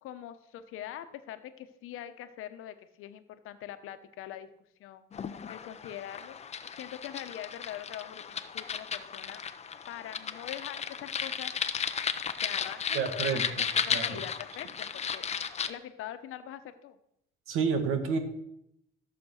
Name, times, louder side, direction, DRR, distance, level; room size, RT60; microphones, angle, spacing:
voice 1, 0.0-4.5 4.8-5.0 5.5-6.4 6.7-9.4 9.9-11.5 12.4-13.4 13.9-15.3 15.7-17.0, left 11 dB, 80° left, 10 dB, 1.1 m, -43 dB
sound 1, 5.1-15.7, left 7 dB, 30° left, 0.7 m, -35 dB
voice 2, 12.9-14.2 17.5-18.2, right 5 dB, 80° right, 7 dB, 2.0 m, -30 dB
14.0 x 7.0 x 6.5 m, 0.78 s
cardioid pair, 130°, 21 cm